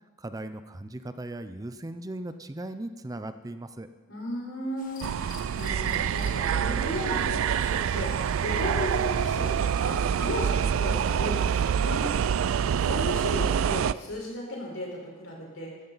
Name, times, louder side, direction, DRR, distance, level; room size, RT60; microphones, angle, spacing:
voice 1, 0.2-3.9, right 1 dB, 20° right, 10 dB, 0.5 m, -38 dB
voice 2, 4.1-15.7, left 1 dB, 90° left, -2 dB, 4.4 m, -35 dB
sound 1, 4.8-13.6, left 3 dB, 40° left, 1.8 m, -50 dB
sound 2, 5.0-13.9, right 8 dB, 85° right, 0.3 m, -26 dB
14.0 x 13.5 x 4.0 m, 1.3 s
head